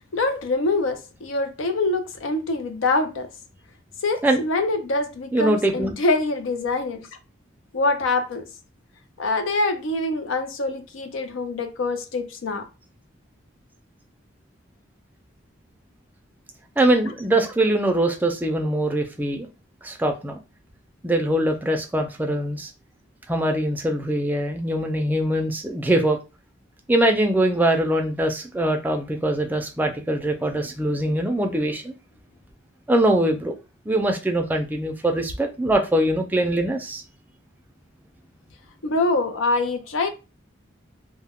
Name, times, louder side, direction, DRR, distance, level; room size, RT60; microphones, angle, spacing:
voice 1, 0.1-3.3 4.0-7.1 7.7-8.4 9.2-12.7 38.8-40.1, left 2 dB, 85° left, 0.5 m, -24 dB
voice 2, 5.3-5.9 16.8-19.5 19.8-20.4 21.0-22.7 23.3-26.2 26.9-31.9 32.9-33.5 33.9-37.0, right 1 dB, 10° right, 0.3 m, -22 dB
2.2 x 2.1 x 3.5 m
head